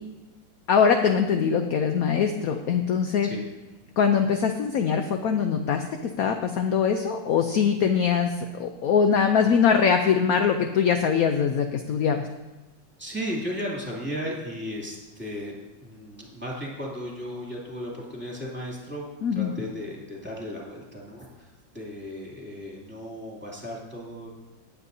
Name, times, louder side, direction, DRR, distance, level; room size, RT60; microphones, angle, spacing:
voice 1, 0.7-3.3 4.0-12.2 19.2-19.5, left 6 dB, 70° left, 6 dB, 0.9 m, -22 dB
voice 2, 13.0-19.0 19.3-24.3, equal, 5° right, -4 dB, 2.5 m, -35 dB
18.0 x 8.2 x 2.7 m, 1.1 s
omnidirectional pair, 2.1 m